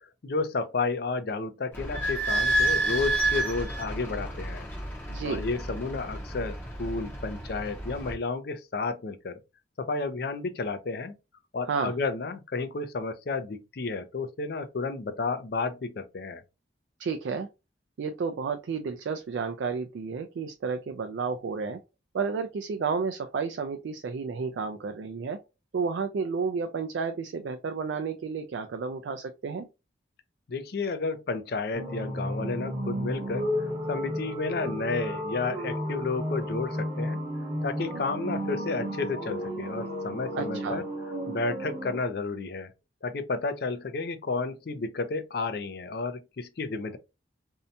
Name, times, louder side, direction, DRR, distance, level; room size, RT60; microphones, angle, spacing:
voice 1, 0.0-4.7 5.2-9.4 9.8-11.2 11.5-16.4 30.5-37.2 37.6-40.8 41.3-42.7 43.0-47.0, left 3 dB, 55° left, 0.4 m, -32 dB
Idling / Squeak, 1.7-8.1, right 2 dB, 10° left, 0.6 m, -30 dB
voice 2, 5.1-5.4 11.6-11.9 17.0-17.5 18.0-21.8 22.1-25.4 25.7-29.7 40.3-40.8, right 5 dB, 70° right, 0.3 m, -31 dB
sound 1, 31.7-42.0, equal, 30° right, 0.9 m, -33 dB
2.7 x 2.1 x 2.6 m
head